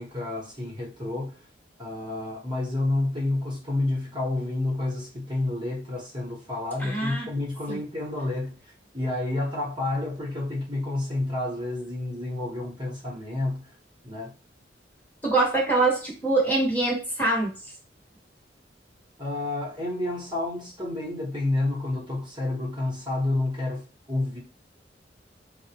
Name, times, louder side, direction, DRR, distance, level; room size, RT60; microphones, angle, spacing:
voice 1, 0.0-1.4 1.8-13.7 14.0-14.3 19.2-24.4, left 2 dB, 25° right, 1.0 m, -29 dB
voice 2, 6.8-7.3 7.7-7.8 15.2-17.5, right 2 dB, 10° left, 1.0 m, -24 dB
3.8 x 2.1 x 2.8 m
head